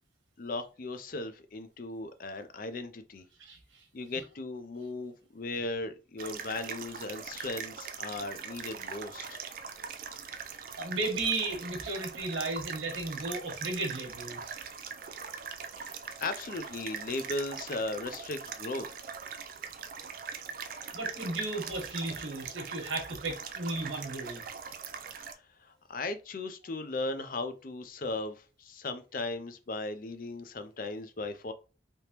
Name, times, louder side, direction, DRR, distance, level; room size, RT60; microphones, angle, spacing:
voice 1, 0.4-3.3 3.9-9.4 15.8-18.9 25.3-31.5, left 2 dB, 45° left, 0.4 m, -37 dB
sound 1, 6.2-25.3, right 6 dB, 45° right, 0.4 m, -42 dB
voice 2, 10.8-14.5 20.9-24.4, right 2 dB, 85° right, 1.1 m, -34 dB
3.4 x 2.9 x 2.9 m
head